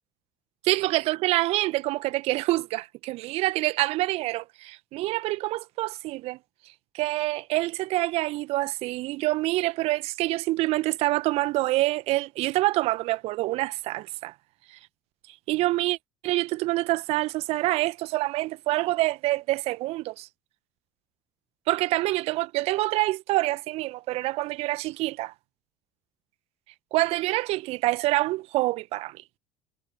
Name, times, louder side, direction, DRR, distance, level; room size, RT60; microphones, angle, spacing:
voice 1, 0.7-6.4 6.9-14.3 15.5-16.0 16.2-20.3 21.7-25.3 26.9-29.2, right 19 dB, 55° right, 1.7 m, -26 dB
figure-of-eight pair, 60°, 12 cm